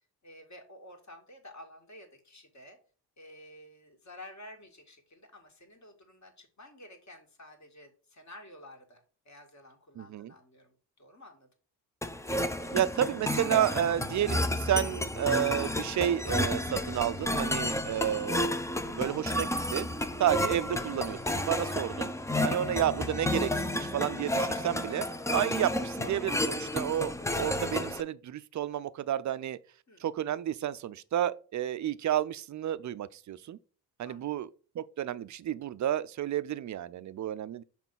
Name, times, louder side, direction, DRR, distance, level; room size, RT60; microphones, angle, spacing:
voice 1, 0.2-2.8 3.2-11.5 29.9-30.1 34.0-34.3, left 1 dB, 35° left, 2.1 m, -52 dB
voice 2, 10.0-10.3 12.7-18.6 18.9-19.9 20.2-22.1 22.4-29.6 30.0-33.6 34.0-34.5 34.7-37.6, right 11 dB, 40° right, 0.5 m, -31 dB
sound 1, 12.0-28.0, left 1 dB, 5° left, 0.6 m, -31 dB
6.0 x 4.3 x 5.3 m
hypercardioid pair, 45°, 48 cm